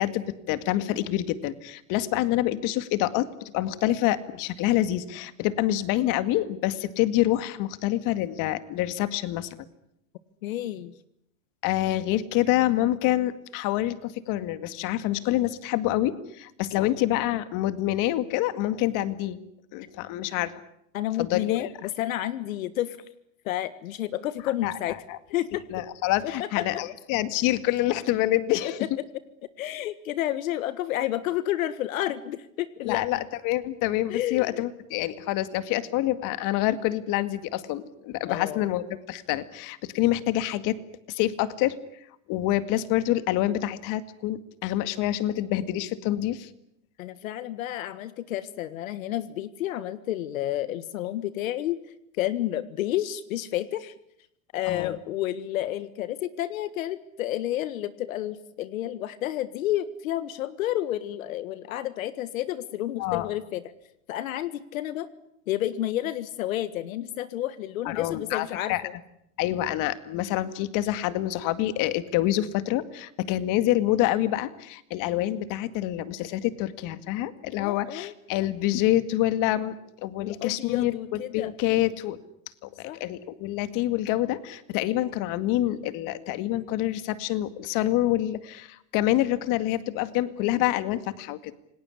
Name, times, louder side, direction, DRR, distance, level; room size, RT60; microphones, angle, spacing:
voice 1, 0.0-9.5 11.6-19.4 19.7-20.6 21.2-21.7 24.6-24.7 25.1-25.2 25.7-28.9 32.8-40.8 41.1-41.8 42.3-46.5 54.7-54.9 63.0-63.3 67.9-68.8 69.4-79.8 80.0-82.2 82.6-91.5, left 14 dB, 50° left, 13 dB, 2.1 m, -27 dB
voice 2, 10.4-10.9 16.8-16.9 20.9-23.0 23.4-25.0 25.3-25.6 26.4-26.7 28.6-28.7 29.6-33.2 34.1-34.6 38.3-38.7 47.0-51.8 52.2-53.9 54.5-63.6 64.1-65.1 65.5-68.9 77.6-78.1 80.2-81.8 82.8-83.0, left 13 dB, 85° left, 14 dB, 1.6 m, -30 dB
28.0 x 19.0 x 10.0 m, 0.77 s
supercardioid pair, 125°, 40 cm